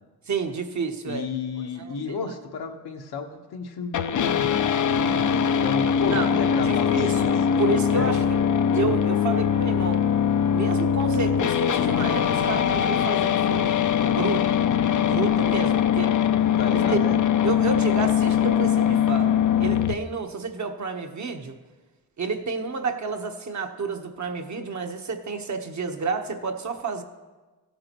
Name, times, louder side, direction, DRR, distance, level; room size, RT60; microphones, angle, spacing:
voice 1, 0.3-1.3 1.8-2.2 6.1-6.3 6.6-8.5 8.7-10.1 10.5-14.7 15.0-16.1 16.7-17.0 17.4-21.6 22.2-27.0, right 4 dB, 45° right, 5 dB, 1.1 m, -30 dB
voice 2, 1.1-7.7 7.9-8.1 16.6-17.2, left 5 dB, 75° left, 3 dB, 1.3 m, -32 dB
sound 1, 3.9-19.9, left 8 dB, 50° left, 0.6 m, -22 dB
15.5 x 8.7 x 3.0 m, 1.3 s
cardioid pair, 65°, 39 cm